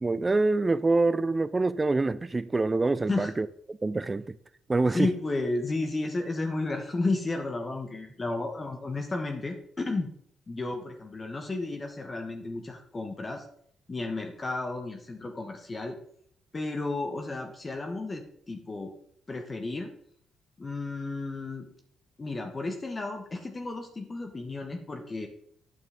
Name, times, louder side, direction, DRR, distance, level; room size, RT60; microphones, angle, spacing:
voice 1, 0.0-4.4 4.7-5.1, right 3 dB, 20° right, 0.4 m, -26 dB
voice 2, 4.9-10.1 10.5-13.4 13.9-16.0 16.5-18.9 19.3-19.9 20.6-21.7 22.2-25.3, left 2 dB, 30° left, 1.1 m, -32 dB
9.1 x 6.3 x 3.6 m
cardioid pair, 90°, 0 cm